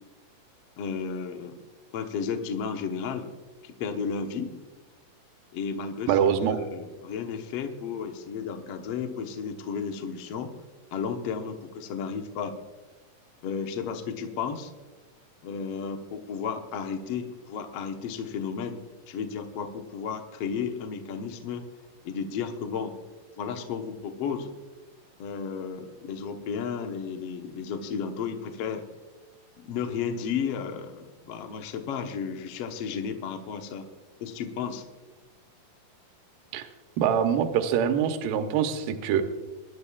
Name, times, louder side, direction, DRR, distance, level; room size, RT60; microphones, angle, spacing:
voice 1, 0.8-1.6 1.9-3.3 3.6-4.5 5.5-10.5 10.9-12.5 13.4-14.7 15.4-18.8 19.1-21.7 22.0-22.9 23.4-24.5 25.2-28.8 29.6-33.9 34.2-34.8, left 6 dB, 65° left, 5 dB, 1.5 m, -33 dB
voice 2, 6.1-6.6 36.5-36.6 37.0-39.2, right 8 dB, 80° right, 6 dB, 2.5 m, -24 dB
23.0 x 12.0 x 2.3 m, 1.2 s
omnidirectional pair, 4.1 m